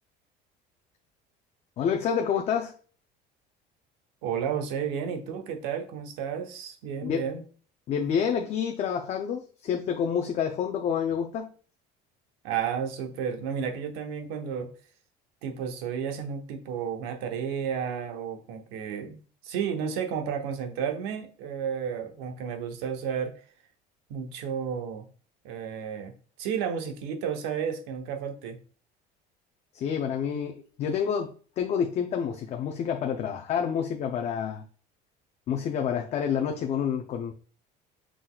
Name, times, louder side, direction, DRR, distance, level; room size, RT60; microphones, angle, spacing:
voice 1, 1.8-2.7 7.0-7.3 7.9-11.5 29.7-34.6 35.5-37.3, left 7 dB, 40° left, 0.5 m, -28 dB
voice 2, 4.2-7.4 12.4-14.7 15.4-23.3 24.1-25.0 25.4-26.1 26.4-28.6, right 7 dB, 85° right, 0.9 m, -32 dB
5.9 x 3.9 x 2.3 m
cardioid pair, 155°, 18 cm